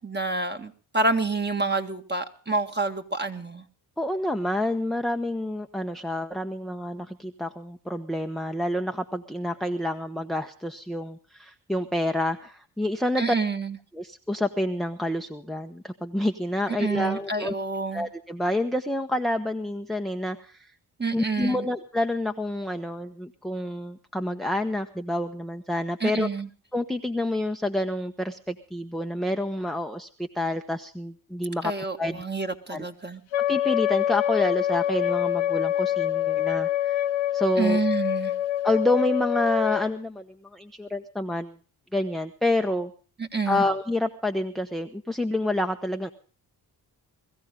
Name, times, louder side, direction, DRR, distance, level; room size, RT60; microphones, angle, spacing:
voice 1, 0.0-3.6 13.2-13.8 16.7-18.1 21.0-21.7 26.0-26.5 31.6-33.2 37.6-38.3 43.2-43.7, right 3 dB, 20° right, 5 dB, 1.9 m, -28 dB
voice 2, 4.0-13.3 13.9-17.5 17.9-20.7 21.1-26.3 26.7-31.7 32.0-32.2 32.7-32.9 33.5-37.0 37.3-37.8 38.6-41.6 41.9-42.9 43.5-46.1, left 1 dB, ahead, 7 dB, 1.0 m, -28 dB
Wind instrument woodwind instrument, 33.3-39.9, left 12 dB, 75° left, 1.1 m, -25 dB
21.5 x 14.5 x 3.7 m, 0.39 s
supercardioid pair, 50°, 47 cm